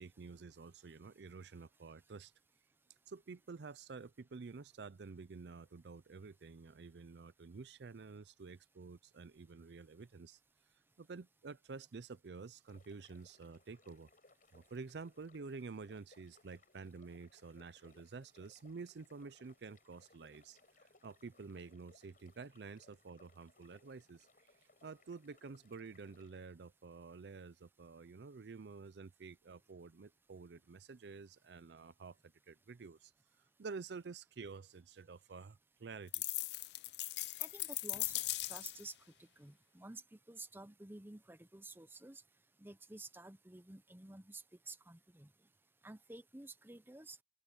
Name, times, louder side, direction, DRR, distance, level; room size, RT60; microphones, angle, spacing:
voice 1, 0.0-2.3 3.1-10.4 11.0-14.1 14.5-20.6 21.0-24.5 24.8-33.1 33.6-36.1, right 4 dB, 75° right, 0.5 m, -50 dB
sound 1, 12.7-26.4, left 3 dB, 50° left, 5.7 m, -68 dB
sound 2, 36.1-38.9, left 17 dB, 75° left, 0.5 m, -39 dB
voice 2, 37.4-38.2 38.5-38.9 39.2-42.2 42.6-45.3 45.8-47.2, right 2 dB, 10° right, 0.8 m, -52 dB
open air
head